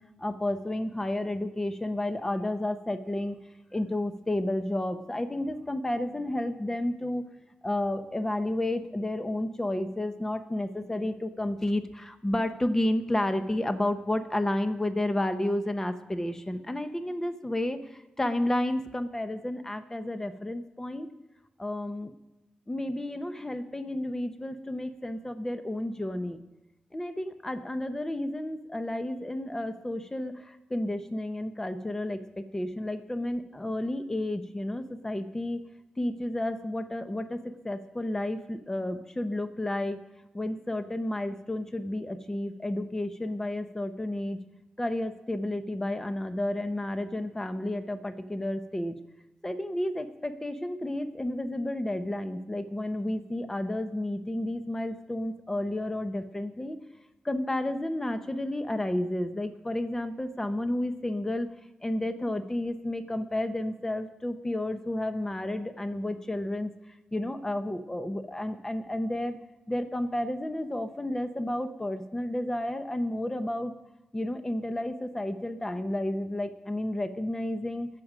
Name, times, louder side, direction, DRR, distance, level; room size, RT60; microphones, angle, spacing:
voice 1, 0.2-3.4 3.7-7.2 7.6-21.1 21.6-22.1 22.7-26.4 26.9-35.6 36.0-37.4 37.6-40.0 40.3-44.4 44.8-48.9 49.4-56.8 57.2-61.5 61.8-69.3 69.7-73.7 74.1-77.9, left 1 dB, 20° left, 8 dB, 0.9 m, -31 dB
20.5 x 7.6 x 5.1 m, 0.98 s
cardioid pair, 65°, 3 cm